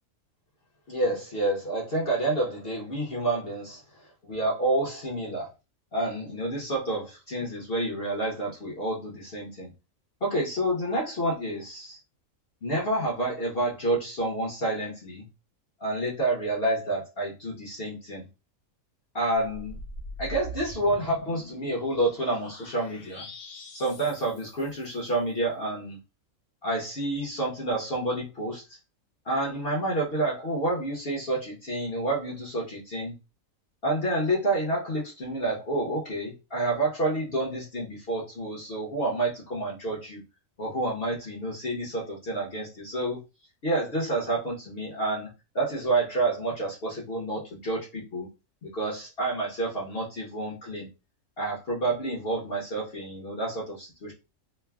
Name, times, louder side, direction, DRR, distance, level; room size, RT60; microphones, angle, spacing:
voice 1, 0.9-3.8 4.2-5.5 5.9-9.7 10.2-12.0 12.6-15.2 15.8-18.3 19.1-19.8 20.2-23.3 23.7-26.0 26.6-28.6 29.2-33.1 33.8-40.2 40.6-43.2 43.6-45.3 45.5-48.3 48.6-50.9 51.4-54.1, right 2 dB, 50° left, -3 dB, 0.9 m, -29 dB
sound 1, 19.4-25.2, equal, 90° left, 1.2 m, -43 dB
3.1 x 2.1 x 2.2 m, 0.28 s
omnidirectional pair, 1.5 m